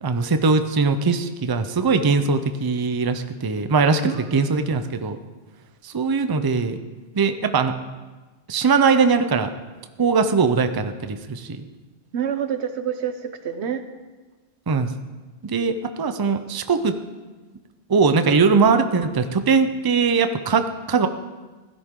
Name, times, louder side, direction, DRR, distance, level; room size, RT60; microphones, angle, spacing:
voice 1, 0.0-5.2 5.8-6.8 7.1-7.7 8.5-9.5 10.0-11.6 14.7-14.9 15.4-16.9 17.9-21.1, right 4 dB, 25° right, 9 dB, 0.5 m, -20 dB
voice 2, 4.0-4.9 12.1-13.8, right 8 dB, 90° right, 9 dB, 1.2 m, -28 dB
16.0 x 13.0 x 3.7 m, 1.3 s
omnidirectional pair, 1.1 m